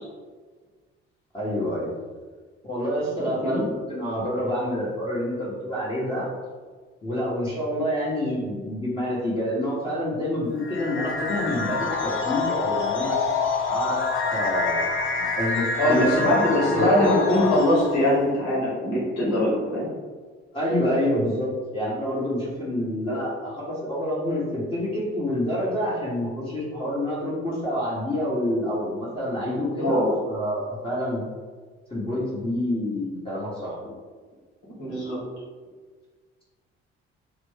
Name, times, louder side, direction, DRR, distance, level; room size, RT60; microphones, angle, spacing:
voice 1, 1.3-1.9 2.6-6.3 7.0-13.2 13.7-14.0 14.3-16.4 16.7-17.1 20.5-31.2 31.9-33.8, equal, 15° left, -9 dB, 1.2 m, -27 dB
voice 2, 3.2-3.6 15.8-19.9 29.8-30.1 34.6-35.2, left 1 dB, 60° left, -6 dB, 1.4 m, -22 dB
sound 1, 10.6-18.2, left 4 dB, 40° left, 0.6 m, -27 dB
2.9 x 2.6 x 3.5 m, 1.5 s
figure-of-eight pair, 45°, 32 cm